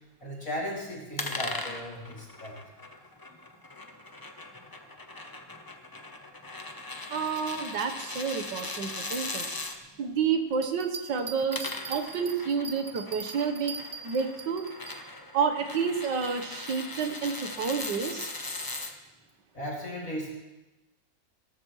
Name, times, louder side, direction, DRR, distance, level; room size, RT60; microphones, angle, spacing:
voice 1, 0.2-2.6 19.5-20.3, equal, 45° left, -4 dB, 3.1 m, -36 dB
sound 1, 1.2-9.8 11.3-18.9, left 2 dB, 30° left, 0.4 m, -39 dB
voice 2, 7.1-9.4 10.0-13.7 14.0-14.7 15.0-15.1 15.3-18.3, right 6 dB, 75° right, 6 dB, 1.8 m, -30 dB
Bell, 10.5-15.0 15.4-15.5, right 5 dB, 40° right, 1.2 m, -41 dB
18.0 x 14.0 x 3.1 m, 1.0 s
omnidirectional pair, 1.9 m